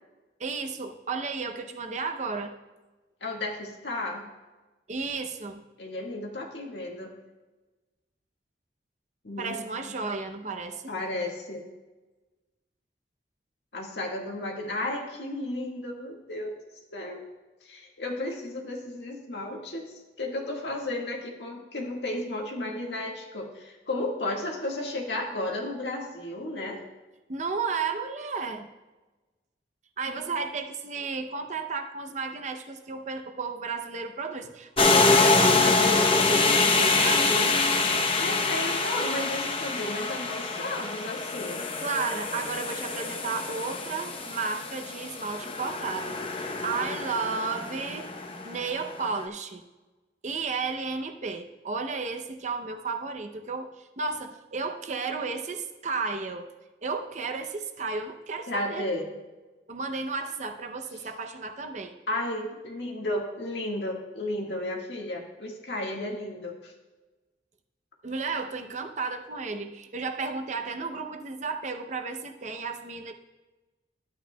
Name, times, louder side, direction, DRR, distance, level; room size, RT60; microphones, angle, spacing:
voice 1, 0.4-2.5 4.9-5.6 9.4-10.9 27.3-28.7 30.0-37.6 41.8-48.1 48.4-49.6 50.2-56.5 56.8-58.8 59.7-61.9 68.0-73.1, right 4 dB, 40° right, 6 dB, 0.6 m, -33 dB
voice 2, 3.2-4.2 5.8-7.1 9.2-10.1 10.9-11.6 13.7-16.5 16.9-17.2 17.6-26.8 38.2-41.7 58.5-59.1 62.1-66.7, left 1 dB, 80° left, 0 dB, 1.6 m, -33 dB
sound 1, 34.8-48.9, left 3 dB, 30° left, 0.8 m, -25 dB
13.0 x 9.2 x 2.2 m, 1.2 s
head